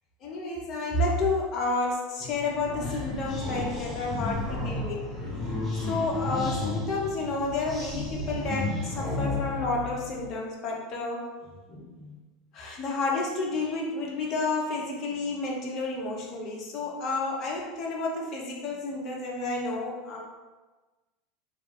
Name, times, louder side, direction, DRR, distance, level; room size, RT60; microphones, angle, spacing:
voice 1, 0.2-5.1 5.7-11.3 11.7-12.2 12.5-20.3, left 3 dB, 40° left, -2 dB, 0.8 m, -30 dB
sound 1, 2.2-10.3, left 2 dB, 10° left, 1.1 m, -33 dB
3.1 x 2.5 x 3.6 m, 1.2 s
figure-of-eight pair, 80°, 0 cm